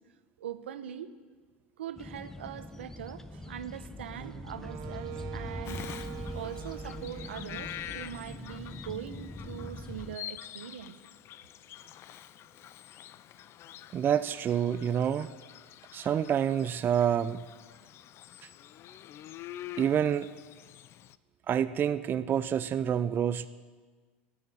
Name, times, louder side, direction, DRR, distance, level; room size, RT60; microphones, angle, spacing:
voice 1, 0.4-1.1 1.8-5.8 6.3-10.9, right 9 dB, 85° right, 11 dB, 0.9 m, -42 dB
sound 1, 2.0-10.2, left 1 dB, 5° left, 0.7 m, -42 dB
Wind instrument woodwind instrument, 4.1-8.4, right 11 dB, 50° right, 1.0 m, -44 dB
Bird vocalization bird call bird song, 5.6-21.1, left 12 dB, 45° left, 0.5 m, -47 dB
voice 2, 13.9-15.3 15.9-17.4 19.8-20.3 21.5-23.5, right 9 dB, 35° right, 12 dB, 0.5 m, -27 dB
13.5 x 9.3 x 9.8 m, 1.5 s
hypercardioid pair, 90°, 6 cm